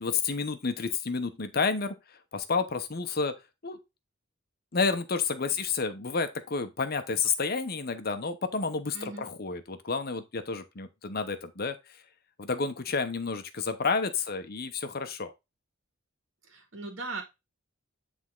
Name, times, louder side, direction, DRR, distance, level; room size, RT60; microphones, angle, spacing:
voice 1, 0.0-1.9 2.3-3.3 3.6-3.8 4.7-11.7 12.4-15.3, left 4 dB, 50° left, 0.9 m, -30 dB
voice 2, 8.9-9.2 16.5-17.2, right 3 dB, 70° right, 2.0 m, -38 dB
9.5 x 3.7 x 3.7 m
head